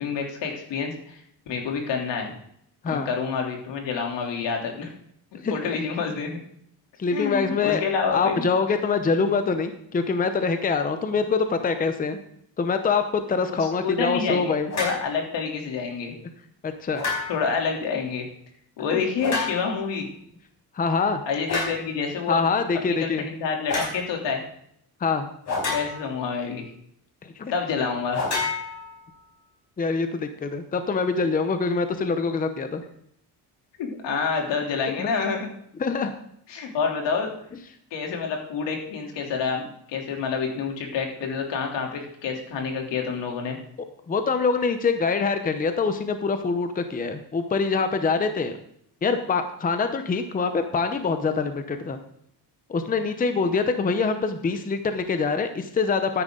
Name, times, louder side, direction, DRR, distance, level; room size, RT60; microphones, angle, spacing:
voice 1, 0.0-2.3 2.9-4.9 5.5-6.4 7.1-8.4 13.5-16.1 17.3-18.3 18.8-20.1 21.3-22.4 22.9-24.4 25.7-26.7 27.5-28.3 33.8-35.4 36.5-37.3 37.9-43.6, left 5 dB, 85° left, 2 dB, 3.4 m, -28 dB
voice 2, 7.0-7.8 8.1-12.2 12.6-14.7 16.6-17.0 18.9-19.0 20.8-21.2 22.3-23.2 25.0-25.3 27.2-27.5 29.8-32.8 35.0-35.1 35.8-36.1 44.1-48.6 49.0-52.0 52.7-56.2, left 4 dB, 20° left, 8 dB, 0.8 m, -24 dB
sound 1, 14.7-15.0 16.9-17.6 19.2-19.8 21.5-21.8 23.7-24.0 25.5-26.2 28.1-29.3, left 3 dB, 40° left, 4.9 m, -29 dB
13.5 x 9.9 x 3.9 m, 0.68 s
cardioid pair, 175°, 42 cm